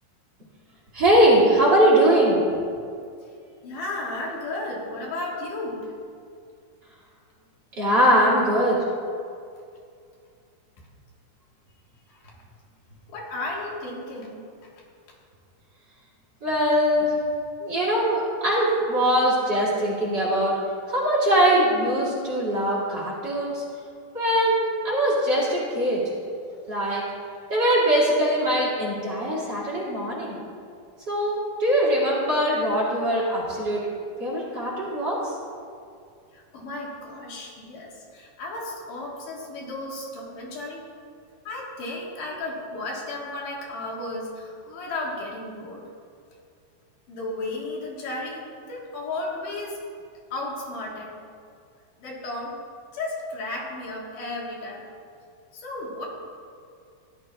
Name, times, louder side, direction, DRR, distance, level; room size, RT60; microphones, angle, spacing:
voice 1, 0.9-2.6 7.8-8.8 16.4-17.1 17.6-20.5 20.9-23.6 24.1-26.0 26.7-27.0 27.5-30.4 31.1-33.8 34.2-35.3, right 1 dB, 35° right, -6 dB, 2.6 m, -21 dB
voice 2, 3.6-5.9 12.1-12.3 13.1-14.7 36.3-40.8 41.4-45.9 47.1-49.8 50.3-51.2 52.0-52.6 52.9-54.9 55.5-56.1, left 2 dB, 70° left, -3 dB, 3.0 m, -34 dB
16.5 x 11.5 x 2.3 m, 2.3 s
omnidirectional pair, 3.8 m